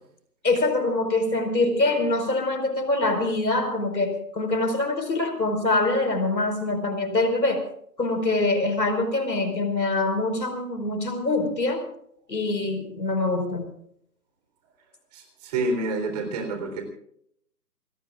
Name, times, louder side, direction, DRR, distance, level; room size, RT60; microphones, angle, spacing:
voice 1, 0.4-7.6 8.0-11.8 12.3-13.6, left 2 dB, 90° left, 7 dB, 5.0 m, -24 dB
voice 2, 15.1-16.8, right 2 dB, 25° right, 5 dB, 3.8 m, -28 dB
28.5 x 19.0 x 2.5 m, 0.69 s
figure-of-eight pair, 155°, 49 cm